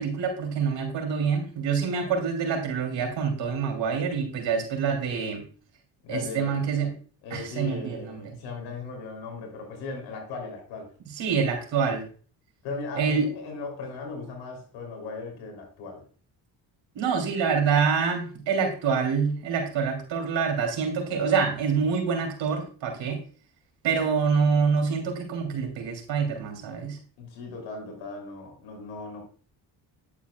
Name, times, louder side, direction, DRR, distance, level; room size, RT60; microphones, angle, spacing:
voice 1, 0.0-5.4 6.1-6.9 7.3-8.4 11.1-12.0 13.0-13.3 16.9-23.2 23.8-27.0, right 6 dB, 75° right, 3.0 m, -26 dB
voice 2, 6.0-6.6 7.2-10.9 12.6-16.0 27.2-29.2, left 3 dB, 85° left, 3.2 m, -37 dB
10.5 x 8.2 x 2.3 m
supercardioid pair, 60°, 45 cm